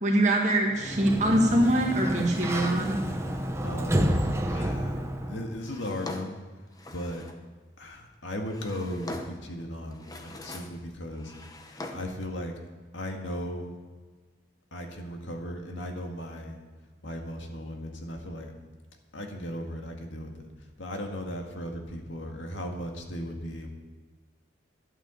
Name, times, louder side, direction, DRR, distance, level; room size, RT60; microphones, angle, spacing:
voice 1, 0.0-3.0, right 1 dB, 40° right, -1 dB, 2.1 m, -23 dB
Sliding door, 0.7-5.6, equal, 15° right, 0.9 m, -29 dB
voice 2, 3.6-4.9 5.3-6.4 6.9-7.3 7.8-11.4 11.9-12.5 12.9-13.7 14.7-16.6 17.0-18.5 19.1-20.5 20.8-23.7, equal, 80° left, 3 dB, 1.9 m, -36 dB
Drawer open or close, 5.6-7.5 8.3-9.5 9.9-10.8 11.1-12.3, left 1 dB, 20° left, 0.9 m, -42 dB
12.0 x 9.0 x 7.0 m, 1.4 s
head